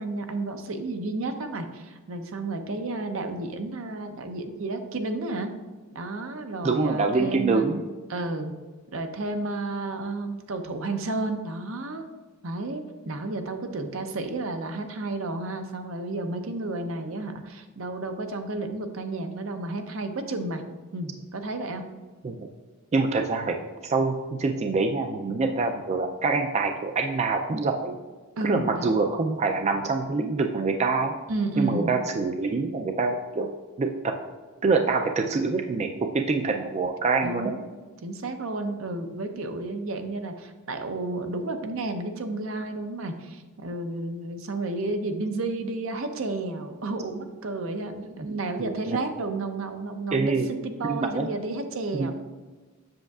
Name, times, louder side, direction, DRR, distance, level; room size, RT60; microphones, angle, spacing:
voice 1, 0.0-5.5 5.9-7.7 8.1-8.5 8.9-12.1 12.4-20.6 20.9-21.8 28.4-29.0 31.3-31.9 37.2-37.6 38.0-50.3 50.6-52.1, right 2 dB, 70° right, 6 dB, 0.7 m, -32 dB
voice 2, 6.6-7.8 22.2-22.5 22.9-28.0 28.4-31.1 31.6-34.1 34.6-37.5 48.3-49.0 50.1-50.5 50.8-51.3 51.9-52.1, right 3 dB, 30° right, 5 dB, 0.3 m, -25 dB
7.7 x 6.4 x 2.4 m, 1.3 s
head